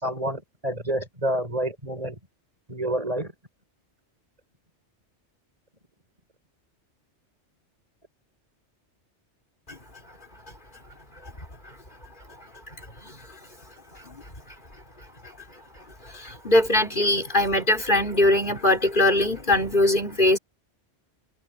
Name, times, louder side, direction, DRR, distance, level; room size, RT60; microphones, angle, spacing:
voice 1, 0.0-2.2 2.7-3.3, right 1 dB, 30° right, 5.9 m, -28 dB
voice 2, 16.0-20.4, left 1 dB, 45° left, 4.8 m, -22 dB
omnidirectional pair, 1.2 m